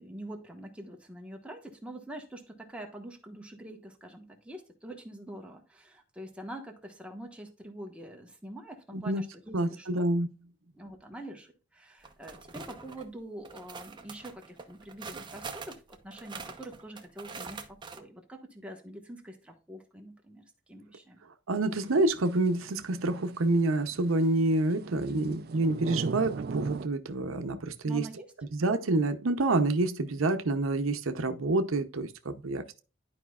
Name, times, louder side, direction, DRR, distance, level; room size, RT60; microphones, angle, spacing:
voice 1, 0.0-10.1 10.7-21.2 27.8-28.3, right 1 dB, 5° right, 1.2 m, -45 dB
voice 2, 8.9-9.2 9.5-10.3 21.5-28.1 28.5-32.8, right 2 dB, 80° right, 0.7 m, -28 dB
sound 1, 12.0-13.1 13.4-18.0, right 4 dB, 20° right, 0.8 m, -44 dB
sound 2, 21.7-26.9, right 4 dB, 50° right, 0.4 m, -40 dB
11.5 x 5.0 x 2.4 m
head